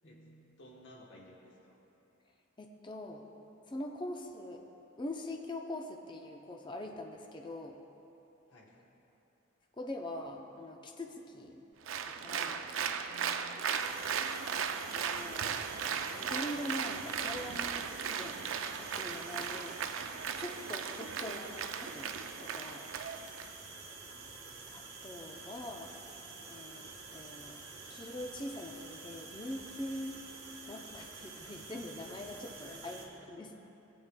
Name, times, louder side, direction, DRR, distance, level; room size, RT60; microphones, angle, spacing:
voice 1, 0.0-0.4 2.6-3.3 3.7-4.6 5.0-7.8 9.8-11.6 12.0-12.7 14.5-14.6 14.9-15.6 15.8-19.8 20.4-22.9 24.7-26.0 26.5-27.6 27.9-30.2 30.7-33.0 33.3-33.6, left 1 dB, 25° left, 2 dB, 0.5 m, -43 dB
voice 2, 0.6-1.8 8.5-8.8 32.6-33.3, left 1 dB, 60° left, -2 dB, 1.0 m, -55 dB
Applause, 11.9-23.5, right 7 dB, 75° right, 0.4 m, -37 dB
sound 1, 13.8-33.1, right 3 dB, 55° right, 1.2 m, -49 dB
sound 2, 18.4-19.9, right 5 dB, 40° right, 0.7 m, -54 dB
16.5 x 8.8 x 2.2 m, 3.0 s
head